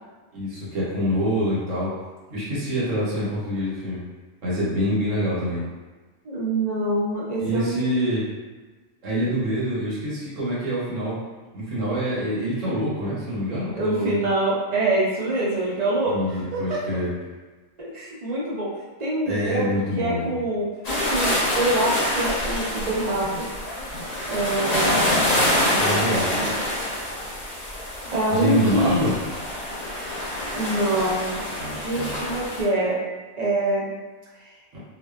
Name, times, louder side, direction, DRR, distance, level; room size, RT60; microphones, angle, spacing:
voice 1, 0.3-1.9 2.3-4.0 4.4-5.6 7.4-8.3 9.0-11.2 11.5-14.1 16.1-17.1 19.3-20.4 25.8-26.3 28.3-29.2 31.6-32.2, equal, 90° right, -8 dB, 1.2 m, -26 dB
voice 2, 6.2-8.1 13.7-16.1 16.5-16.8 17.8-18.7 19.0-20.7 21.1-23.5 24.3-25.1 25.6-26.1 26.4-26.6 27.5-27.7 28.1-29.1 30.6-33.0 33.4-33.9, right 1 dB, 45° right, -6 dB, 0.6 m, -25 dB
sound 1, 20.8-32.6, left 1 dB, 40° left, 0.7 m, -26 dB
2.5 x 2.3 x 2.3 m, 1.3 s
omnidirectional pair, 1.3 m